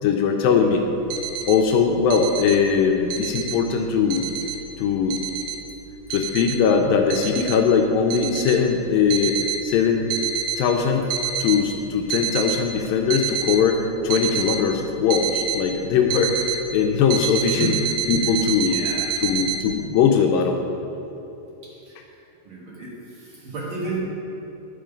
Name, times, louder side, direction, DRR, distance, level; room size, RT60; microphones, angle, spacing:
voice 1, 0.0-0.8 1.5-4.2 4.8-5.2 6.1-10.1 10.6-11.1 11.4-17.7 18.1-18.8 19.2-20.6, left 6 dB, 90° left, 2 dB, 2.3 m, -20 dB
sound 1, 0.9-1.6 2.0-2.6 2.9-3.6 4.1-4.6 5.1-5.6 6.1-6.6 7.1-7.6 8.1-8.6 9.1-9.6 10.1-10.6 11.0-11.6 12.1-12.6 13.1-13.6 14.1-14.6 15.1-15.6 16.1-16.6 17.1-19.6, right 7 dB, 80° right, 1.9 m, -27 dB
voice 2, 17.5-17.8 18.2-18.3 18.6-19.1 21.9-24.0, right 4 dB, 45° right, -5 dB, 1.9 m, -33 dB
10.5 x 5.4 x 5.1 m, 2.9 s
omnidirectional pair, 3.9 m